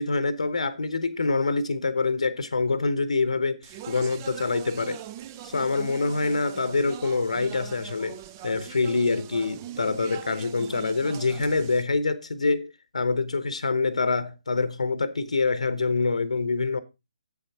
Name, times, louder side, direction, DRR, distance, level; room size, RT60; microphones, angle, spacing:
voice 1, 0.0-5.0 5.4-16.8, left 3 dB, 70° left, 0.9 m, -26 dB
Speech, 3.6-11.8, right 12 dB, 25° right, 0.5 m, -42 dB
7.9 x 7.2 x 4.3 m
figure-of-eight pair, 140°, 4 cm